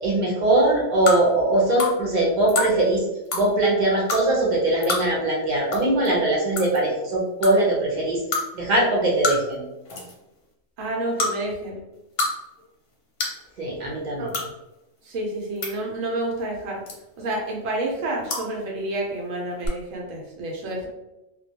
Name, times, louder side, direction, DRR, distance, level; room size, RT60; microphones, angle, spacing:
voice 1, 0.0-3.1 3.3-8.2 8.5-9.6 13.6-14.3, right 2 dB, 45° right, -3 dB, 0.7 m, -21 dB
sound 1, 1.1-1.2 1.8-1.9 2.5-2.7 3.3-3.4 4.1-4.2 4.8-5.0 5.7-5.8 6.1-6.2 6.6-6.8 7.4-7.5 8.3-8.4 9.2-9.5 9.9-10.2 11.1-11.3 11.9-12.3 12.6-12.7 13.2-13.4 14.3-14.5 15.3-15.7 16.9-17.2 18.2-18.4 19.6-19.7, left 3 dB, 60° left, 0.7 m, -25 dB
voice 2, 10.8-11.8 14.2-14.3 15.0-16.8 17.2-20.9, right 1 dB, 85° right, -1 dB, 1.0 m, -29 dB
2.3 x 2.2 x 2.7 m, 0.95 s
omnidirectional pair, 1.3 m